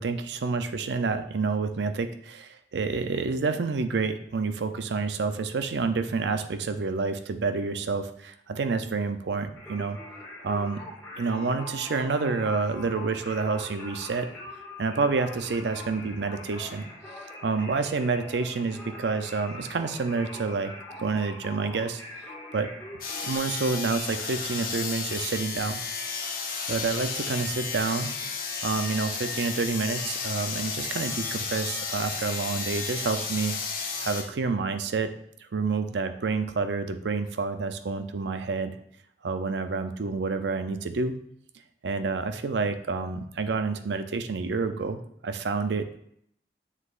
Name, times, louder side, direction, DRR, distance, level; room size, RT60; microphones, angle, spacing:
voice 1, 0.0-10.0 10.4-10.9 11.2-14.3 14.8-16.9 17.4-20.7 21.0-22.0 22.5-22.7 23.2-25.8 26.7-28.1 28.6-33.7 34.0-35.1 35.5-38.8 39.2-41.2 41.8-45.0 45.2-46.0, right 4 dB, 85° right, 9 dB, 0.5 m, -28 dB
Singing, 9.6-23.4, left 2 dB, 10° left, 1.9 m, -43 dB
sound 1, 23.0-34.2, left 5 dB, 50° left, 1.1 m, -33 dB
7.4 x 6.5 x 2.5 m, 0.69 s
head